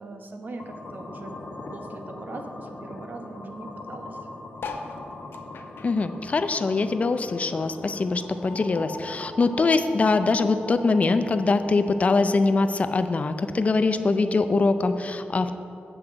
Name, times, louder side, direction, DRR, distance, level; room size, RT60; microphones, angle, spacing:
voice 1, 0.0-1.4 1.7-4.2, right 2 dB, 55° right, 4 dB, 1.0 m, -40 dB
sound 1, 0.6-14.6, left 2 dB, 60° left, 1.1 m, -41 dB
sound 2, 4.5-7.3 7.7-9.2 9.7-9.8 9.9-10.0 10.2-10.6 11.4-11.5, left 4 dB, 80° left, 0.7 m, -41 dB
voice 2, 5.8-15.6, left 3 dB, 40° left, 10 dB, 0.4 m, -23 dB
7.7 x 6.0 x 7.7 m, 2.6 s
wide cardioid pair, 145°, 4 cm